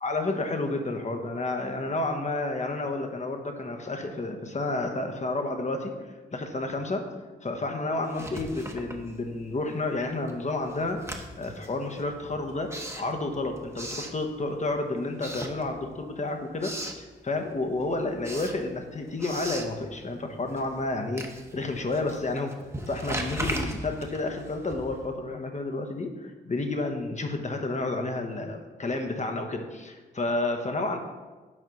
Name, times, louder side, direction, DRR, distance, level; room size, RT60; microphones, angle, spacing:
voice 1, 0.0-7.1 7.4-21.2 21.5-22.5 22.9-31.0, left 2 dB, 40° left, 4 dB, 1.0 m, -31 dB
Writing, 8.0-9.6 9.9-14.7 15.1-16.1 16.4-17.1 17.5-25.1, right 1 dB, 15° right, 1.0 m, -38 dB
6.5 x 4.3 x 5.2 m, 1.3 s
supercardioid pair, 50°, 19 cm